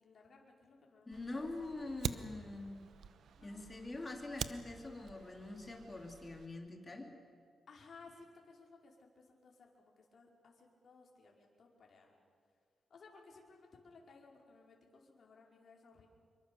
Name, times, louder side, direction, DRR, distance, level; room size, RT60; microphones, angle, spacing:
voice 1, 0.0-2.0 3.2-3.7 7.7-12.2 12.9-16.1, left 4 dB, 50° left, 0 dB, 5.0 m, -60 dB
voice 2, 1.1-2.9 3.4-7.1, left 2 dB, 25° left, 3 dB, 3.2 m, -44 dB
Fire, 1.1-6.5, right 8 dB, 70° right, 0.9 m, -46 dB
27.0 x 23.5 x 7.1 m, 2.1 s
cardioid pair, 120°, 0 cm